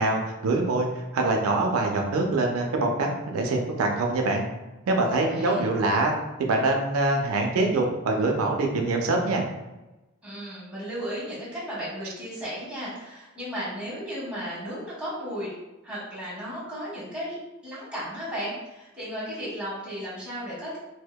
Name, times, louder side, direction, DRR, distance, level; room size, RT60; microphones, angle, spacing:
voice 1, 0.0-4.4 4.9-6.1 6.4-9.4, right 2 dB, 90° right, 2 dB, 0.4 m, -24 dB
voice 2, 5.1-5.7 10.2-15.5 15.8-17.4 17.6-20.8, equal, 5° right, -9 dB, 0.9 m, -35 dB
2.7 x 2.0 x 2.2 m, 1.0 s
head